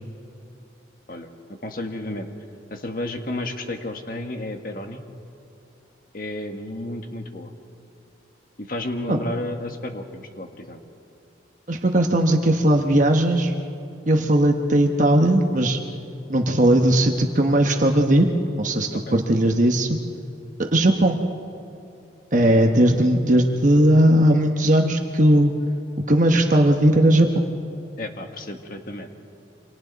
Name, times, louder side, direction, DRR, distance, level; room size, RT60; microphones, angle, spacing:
voice 1, 1.6-2.3 2.7-5.0 6.1-7.5 8.6-10.8 18.9-19.2 28.0-29.1, left 1 dB, 50° left, 5 dB, 1.6 m, -32 dB
voice 2, 11.7-13.5 14.1-15.8 16.3-18.3 18.6-20.0 20.6-21.2 22.3-25.5 26.1-27.4, right 1 dB, 40° right, 3 dB, 1.1 m, -18 dB
28.5 x 25.5 x 4.1 m, 2.7 s
head